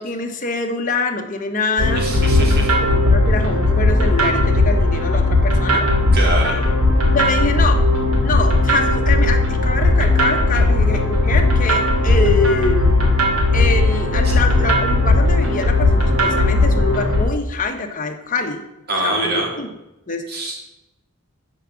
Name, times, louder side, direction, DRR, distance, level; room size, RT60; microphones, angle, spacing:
voice 1, 0.0-5.9 7.1-7.8 8.2-12.9 13.5-18.6 19.0-19.7 20.1-20.2, left 3 dB, 40° left, 4 dB, 1.3 m, -25 dB
sound 1, 1.8-17.2, left 2 dB, 80° right, 2.6 m, -16 dB
voice 2, 1.9-2.7 6.1-6.6 10.5-10.6 14.2-14.3 18.9-19.5 20.3-20.6, right 2 dB, 50° right, -1 dB, 2.9 m, -24 dB
11.5 x 5.0 x 7.1 m, 0.91 s
head